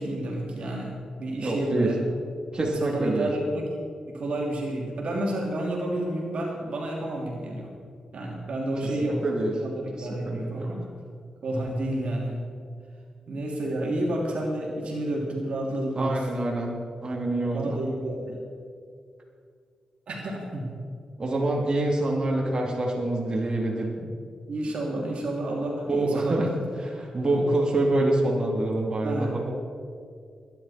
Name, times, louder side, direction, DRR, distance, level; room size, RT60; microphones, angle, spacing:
voice 1, 0.0-2.0 2.7-3.7 4.0-7.7 8.1-9.2 9.6-10.9 11.4-12.4 13.3-16.2 17.5-18.4 20.1-20.7 24.5-26.5 27.2-27.4 29.0-29.5, right 1 dB, 70° right, -1 dB, 3.0 m, -30 dB
voice 2, 1.4-1.9 2.5-3.3 9.2-9.5 9.9-10.7 16.0-17.8 21.2-24.1 25.9-26.5 26.8-29.5, right 2 dB, 40° right, -1 dB, 3.0 m, -26 dB
22.0 x 11.0 x 4.4 m, 2.3 s
supercardioid pair, 45°, 2 cm